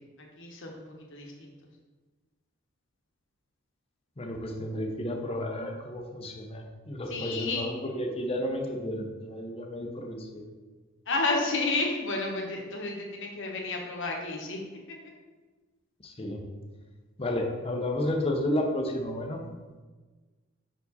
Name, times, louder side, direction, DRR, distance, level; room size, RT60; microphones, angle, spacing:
voice 1, 0.4-0.8 1.1-1.3 7.1-7.6 11.1-14.6, left 3 dB, 60° left, 0 dB, 1.1 m, -30 dB
voice 2, 4.2-10.4 16.0-16.4 17.2-19.4, left 1 dB, 25° left, 2 dB, 0.7 m, -32 dB
5.8 x 4.7 x 4.1 m, 1.3 s
head